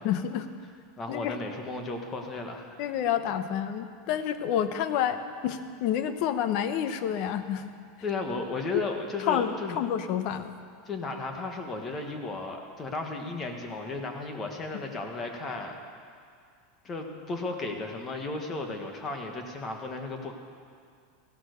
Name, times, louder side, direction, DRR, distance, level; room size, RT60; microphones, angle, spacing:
voice 1, 0.0-0.5 1.1-1.4 2.8-7.6 9.3-10.5, left 9 dB, 50° left, 10 dB, 0.9 m, -29 dB
voice 2, 1.0-2.8 8.0-9.8 10.9-15.8 16.8-20.3, left 3 dB, 20° left, 4 dB, 1.6 m, -34 dB
15.5 x 11.5 x 6.7 m, 2.2 s
supercardioid pair, 150°, 0 cm